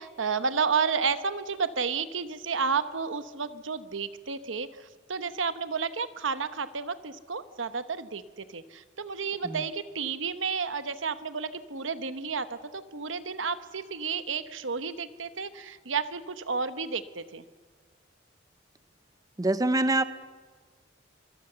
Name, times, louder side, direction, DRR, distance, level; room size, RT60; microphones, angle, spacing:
voice 1, 0.0-4.7 5.1-8.2 8.5-17.4, right 5 dB, 80° right, 11 dB, 1.1 m, -31 dB
voice 2, 19.4-20.0, right 2 dB, 20° right, 12 dB, 0.6 m, -25 dB
24.5 x 23.0 x 6.9 m, 1.5 s
head